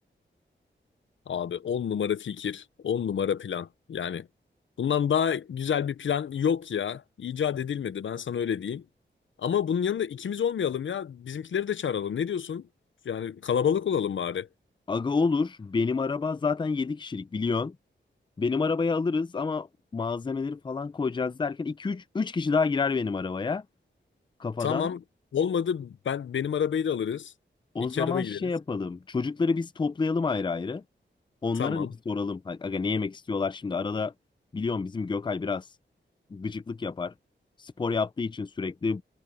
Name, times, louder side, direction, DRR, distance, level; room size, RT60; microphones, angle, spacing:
voice 1, 1.3-4.3 4.8-8.8 9.4-12.7 13.0-14.5 24.6-25.0 25.3-27.3 27.8-28.5 31.6-31.9, left 8 dB, 85° left, 0.8 m, -28 dB
voice 2, 14.9-17.8 18.4-19.7 19.9-23.6 24.4-24.9 27.7-30.8 31.4-34.1 34.5-35.6 36.3-37.1 37.6-39.0, left 4 dB, 25° left, 0.5 m, -28 dB
wide cardioid pair, 175°, 19 cm